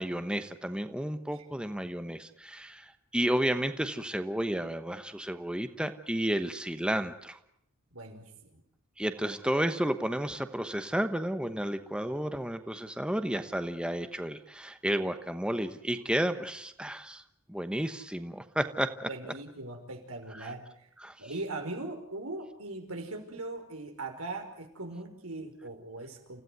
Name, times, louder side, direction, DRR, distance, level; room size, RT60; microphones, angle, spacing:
voice 1, 0.0-7.4 9.0-17.2 17.5-19.1 20.3-20.5 21.0-21.1, right 1 dB, 5° right, 9 dB, 1.1 m, -32 dB
voice 2, 7.9-8.6 19.1-20.9 21.2-26.4, right 2 dB, 90° right, 4 dB, 5.3 m, -40 dB
30.0 x 16.0 x 9.4 m, 0.74 s
head